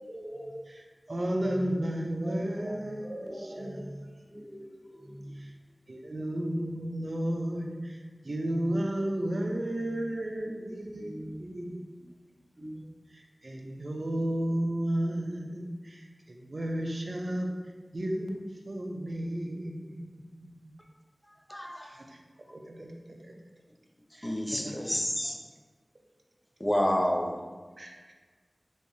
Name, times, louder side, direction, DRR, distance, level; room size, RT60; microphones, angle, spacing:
voice 1, 0.0-0.6 1.5-1.7 2.2-4.0 4.3-5.5 6.0-6.1 9.8-10.0 10.9-11.7 12.6-12.8, equal, 25° right, -4 dB, 0.9 m, -42 dB
voice 2, 0.7-3.8 5.4-5.5 5.9-11.7 13.1-17.5 17.9-20.5 21.8-22.2 22.5-23.4 24.1-24.7 27.8-28.1, right 1 dB, 60° right, 1 dB, 0.5 m, -33 dB
voice 3, 21.5-21.9 24.2-25.3 26.6-27.3, equal, 15° left, 1 dB, 0.5 m, -28 dB
3.4 x 3.2 x 2.7 m, 1.4 s
wide cardioid pair, 40°, 0 cm